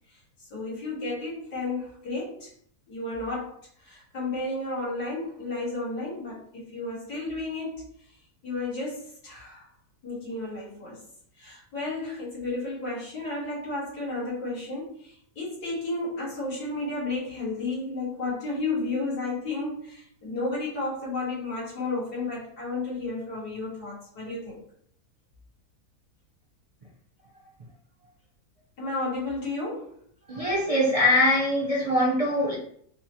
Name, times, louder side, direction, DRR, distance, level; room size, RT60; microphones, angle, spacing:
voice 1, 0.5-2.5 2.9-7.9 8.4-9.7 10.0-11.0 11.4-24.6 28.8-30.0, left 2 dB, 75° left, -7 dB, 2.4 m, -32 dB
voice 2, 30.3-32.5, left 1 dB, 40° right, -4 dB, 0.5 m, -22 dB
5.2 x 2.2 x 3.0 m, 0.63 s
omnidirectional pair, 1.7 m